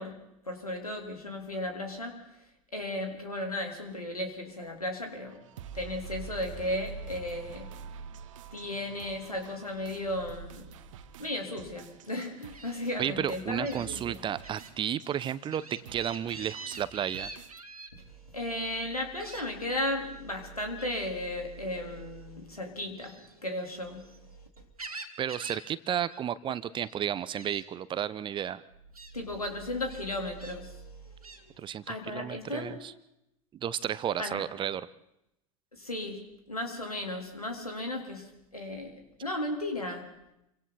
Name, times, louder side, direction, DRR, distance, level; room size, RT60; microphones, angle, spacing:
voice 1, 0.0-2.3 2.7-5.4 5.7-7.8 8.5-10.7 11.2-14.2 17.9-18.0 18.3-24.5 29.1-31.0 31.9-32.8 34.2-34.4 35.7-40.1, left 1 dB, 85° left, 3 dB, 3.8 m, -35 dB
sound 1, 4.7-17.6, right 6 dB, 60° right, 1.5 m, -47 dB
Gull seagull, 12.5-12.7 13.6-13.9 14.4-14.7 15.1-17.9 19.2-19.9 20.8-21.1 22.9-24.2 24.5-25.7 25.9-26.2 26.5-27.0 27.4-27.6 28.4-28.5 28.9-29.1 29.9-30.6 31.2-31.4, right 3 dB, 85° right, 2.2 m, -45 dB
voice 2, 13.0-17.3 25.2-28.6 31.6-31.8 32.1-32.9 33.6-34.9, right 9 dB, 25° right, 16 dB, 0.9 m, -32 dB
28.5 x 25.5 x 4.2 m, 0.83 s
figure-of-eight pair, 85°, 18 cm